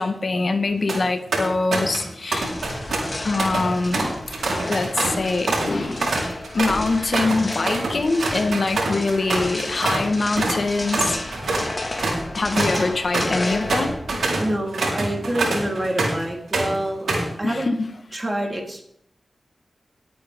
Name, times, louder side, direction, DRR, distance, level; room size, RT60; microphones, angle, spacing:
voice 1, 0.0-2.5 3.2-4.1 4.7-6.2 6.5-11.2 11.6-11.7 12.3-13.9 17.4-17.9, left 3 dB, 65° left, 7 dB, 1.4 m, -23 dB
sound 1, 0.7-1.0 1.3-2.0 2.3-10.1 10.4-10.6 10.9-16.2 16.5-17.3, right 2 dB, 90° right, 4.0 m, -25 dB
sound 2, 2.4-14.3, left 2 dB, 40° left, 2.0 m, -33 dB
voice 2, 14.4-17.1 17.4-17.7 18.1-18.8, right 1 dB, 35° right, 0 dB, 3.7 m, -27 dB
19.5 x 8.8 x 3.7 m, 0.72 s
cardioid pair, 45°, 0 cm